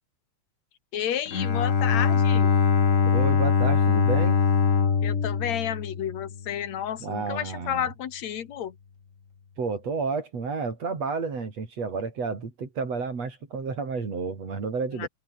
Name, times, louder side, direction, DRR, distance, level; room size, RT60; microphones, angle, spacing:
voice 1, 0.9-2.6 5.0-8.7 14.9-15.1, left 10 dB, 65° left, 2.8 m, -31 dB
Bowed string instrument, 1.3-6.5, left 6 dB, 40° left, 1.2 m, -22 dB
voice 2, 3.1-4.4 7.0-7.9 9.6-15.1, right 4 dB, 55° right, 5.3 m, -31 dB
omnidirectional pair, 3.4 m